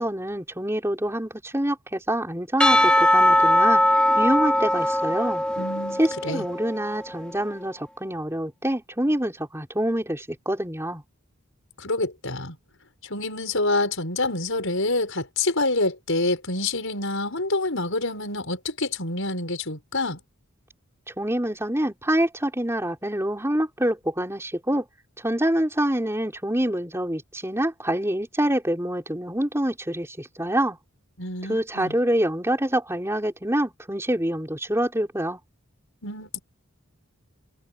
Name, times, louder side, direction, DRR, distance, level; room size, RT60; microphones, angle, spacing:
voice 1, 0.0-3.8 4.2-5.4 6.0-11.0 21.1-24.9 25.2-30.8 31.5-35.4, right 1 dB, 10° right, 4.2 m, -26 dB
Percussion / Church bell, 2.6-6.8, left 1 dB, 5° left, 2.5 m, -20 dB
voice 2, 5.6-6.4 11.8-12.6 13.0-20.2 31.2-31.9 36.0-36.4, left 2 dB, 60° left, 6.8 m, -27 dB
head